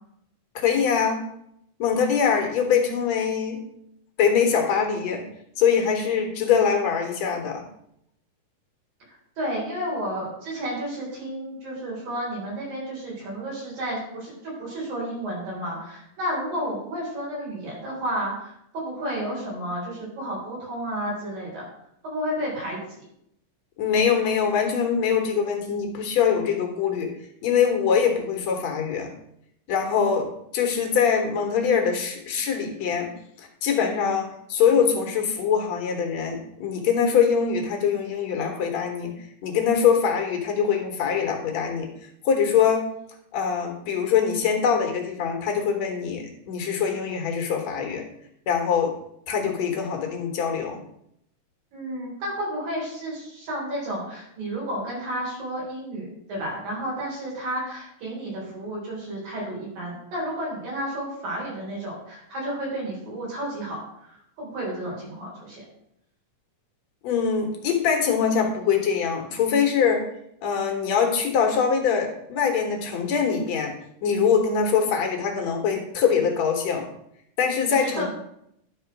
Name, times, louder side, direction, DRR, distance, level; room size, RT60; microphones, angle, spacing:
voice 1, 0.6-1.2 1.8-3.6 4.2-5.2 5.6-7.7 23.8-27.1 27.4-29.1 29.7-33.1 33.4-39.1 39.4-41.9 42.2-42.9 43.3-48.0 48.5-48.9 49.3-50.8 67.0-70.0 70.4-73.7 74.0-76.9 77.4-78.0, left 7 dB, 60° left, 3 dB, 2.0 m, -23 dB
voice 2, 9.4-21.7 22.0-22.8 51.7-65.6 77.7-78.1, equal, 75° right, -4 dB, 5.6 m, -31 dB
11.0 x 4.2 x 6.0 m, 0.75 s
omnidirectional pair, 4.1 m